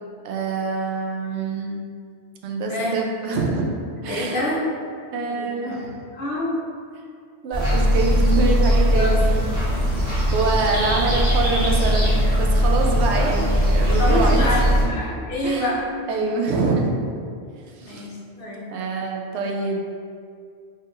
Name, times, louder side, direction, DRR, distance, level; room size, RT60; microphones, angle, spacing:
voice 1, 0.2-1.8 2.4-3.7 4.0-4.4 5.1-6.0 7.4-9.5 10.3-14.9 15.4-15.7 16.1-17.0 17.8-18.1 18.7-19.8, right 3 dB, 85° right, 1 dB, 0.9 m, -25 dB
voice 2, 2.7-3.0 4.1-4.6 5.2-5.8 6.1-6.6 8.9-9.2 9.7-10.0 13.1-13.4 14.0-15.8 16.1-16.2 17.9-18.7, left 1 dB, 60° left, -4 dB, 0.9 m, -27 dB
sound 1, 7.5-14.8, equal, 40° right, 1.7 m, -19 dB
4.2 x 3.5 x 2.5 m, 2.3 s
omnidirectional pair, 1.1 m